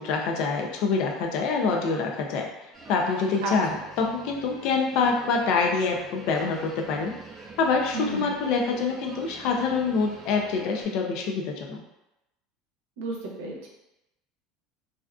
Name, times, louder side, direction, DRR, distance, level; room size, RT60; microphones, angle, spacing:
voice 1, 0.0-2.5 2.9-7.1 7.6-11.8, left 4 dB, 60° left, 1 dB, 0.4 m, -26 dB
sound 1, 2.7-10.8, right 3 dB, 15° right, 0.6 m, -45 dB
voice 2, 7.9-8.3 13.0-13.7, right 3 dB, 85° right, -1 dB, 0.6 m, -32 dB
2.4 x 2.3 x 2.3 m, 0.91 s
cardioid pair, 145°, 0 cm